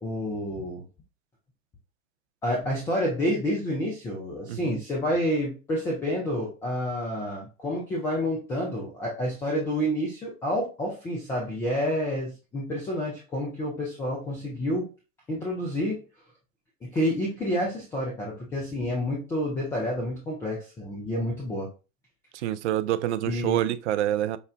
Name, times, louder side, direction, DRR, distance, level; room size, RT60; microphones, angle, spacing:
voice 1, 0.0-0.8 2.4-14.9 15.3-16.0 16.8-21.7 23.2-23.6, equal, 5° left, 0.3 m, -29 dB
voice 2, 22.3-24.4, right 12 dB, 55° right, 0.4 m, -27 dB
5.6 x 2.1 x 2.4 m
figure-of-eight pair, 95°, 42 cm